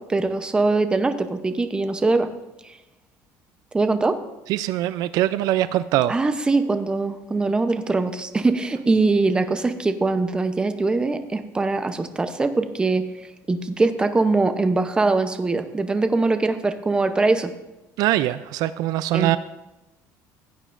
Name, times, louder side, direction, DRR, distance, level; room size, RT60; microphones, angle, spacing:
voice 1, 0.0-2.3 2.6-2.8 3.7-4.2 6.1-13.1 13.5-17.5 19.1-19.3, right 3 dB, 15° right, 9 dB, 0.7 m, -22 dB
voice 2, 4.5-6.1 18.0-19.4, right 14 dB, 65° right, 14 dB, 0.4 m, -22 dB
16.0 x 9.1 x 2.5 m, 0.99 s
cardioid pair, 145°, 7 cm